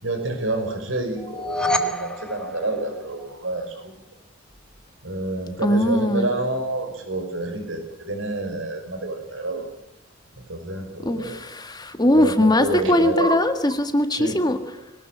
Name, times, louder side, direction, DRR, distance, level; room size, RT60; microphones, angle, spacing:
voice 1, 0.0-3.9 5.0-9.7 10.5-11.4 12.1-13.4 14.1-14.4, right 2 dB, 85° right, 6 dB, 5.7 m, -28 dB
sound 1, 1.2-3.5, left 1 dB, 5° left, 1.5 m, -28 dB
voice 2, 5.6-6.3 11.0-14.7, left 1 dB, 20° left, 8 dB, 1.7 m, -20 dB
22.5 x 18.5 x 7.6 m, 0.83 s
head